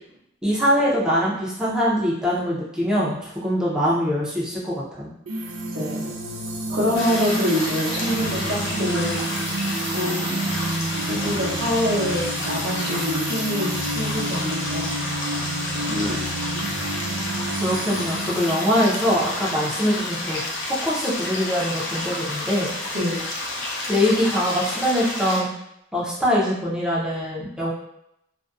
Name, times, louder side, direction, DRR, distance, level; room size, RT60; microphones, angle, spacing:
voice 1, 0.4-5.1 17.6-20.4 20.7-22.7 23.9-25.5 25.9-27.7, equal, 5° right, -7 dB, 0.5 m, -23 dB
sound 1, 5.3-20.0, right 2 dB, 90° right, 0.4 m, -30 dB
voice 2, 5.7-6.1 6.7-9.2 9.9-10.4 11.1-14.9 15.7-16.3 22.9-23.2, left 1 dB, 60° right, -4 dB, 0.7 m, -26 dB
Water at a Brook, 6.9-25.4, left 2 dB, 70° left, 0.6 m, -30 dB
2.5 x 2.1 x 2.3 m, 0.79 s
head